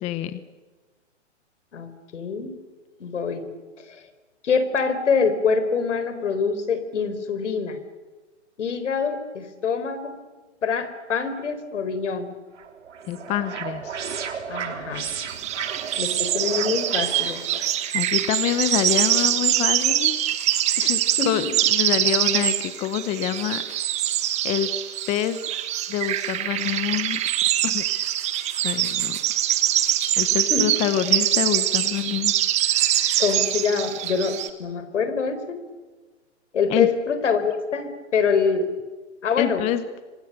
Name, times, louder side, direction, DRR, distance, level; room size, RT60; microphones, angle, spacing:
voice 1, 0.0-0.4 13.1-14.0 17.9-20.2 20.8-21.0 21.2-23.6 24.4-24.7 25.1-25.4 25.9-27.2 27.6-27.8 28.6-29.2 30.2-32.3 32.6-33.3 36.7-36.9 39.4-40.0, left 11 dB, 20° left, 12 dB, 0.9 m, -26 dB
voice 2, 1.7-2.6 3.0-3.5 3.9-4.0 4.4-7.8 8.6-10.2 10.6-12.3 14.5-15.1 16.0-17.6 21.2-21.3 30.5-30.7 33.2-35.6 36.5-38.7 39.2-39.6, left 5 dB, 75° left, 10 dB, 4.4 m, -25 dB
sound 1, 12.6-17.8, right 7 dB, 75° right, 4.1 m, -33 dB
sound 2, 15.3-34.5, right 12 dB, 20° right, 1.5 m, -24 dB
26.5 x 25.5 x 6.7 m, 1.3 s
hypercardioid pair, 145°, 36 cm